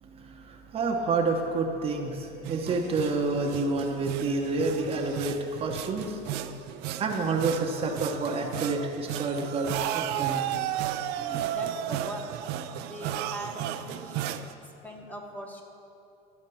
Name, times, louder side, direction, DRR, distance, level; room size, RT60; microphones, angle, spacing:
voice 1, 0.0-6.2 7.0-10.5, right 3 dB, 35° right, 2 dB, 0.8 m, -29 dB
sound 1, 2.4-14.5, right 11 dB, 70° right, 0.4 m, -34 dB
voice 2, 11.2-12.3 12.8-15.6, right 1 dB, 10° left, 0 dB, 0.9 m, -41 dB
12.0 x 4.4 x 6.9 m, 2.8 s
cardioid pair, 140°, 18 cm